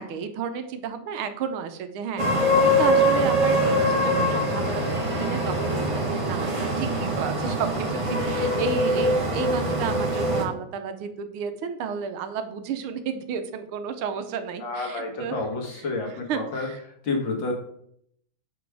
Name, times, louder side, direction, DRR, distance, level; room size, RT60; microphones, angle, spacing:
voice 1, 0.0-8.0 8.3-15.4 16.3-16.8, right 6 dB, 85° right, 8 dB, 1.6 m, -32 dB
sound 1, 2.2-10.4, equal, 25° right, 0.8 m, -23 dB
voice 2, 14.6-16.7 17.0-17.5, left 3 dB, 60° left, 1 dB, 2.1 m, -29 dB
6.1 x 4.8 x 4.8 m, 0.69 s
omnidirectional pair, 2.4 m